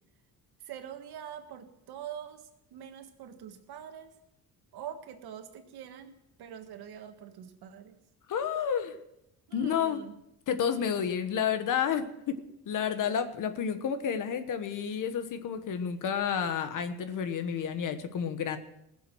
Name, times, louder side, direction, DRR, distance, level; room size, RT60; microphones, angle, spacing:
voice 1, 0.6-4.1 4.7-6.1 6.4-8.0 9.5-10.2, right 9 dB, 75° right, 6 dB, 1.7 m, -44 dB
voice 2, 8.3-8.9 9.5-10.0 10.5-12.4 12.6-18.6, left 7 dB, 55° left, 9 dB, 1.2 m, -30 dB
20.0 x 7.5 x 6.2 m, 0.83 s
cardioid pair, 180°, 38 cm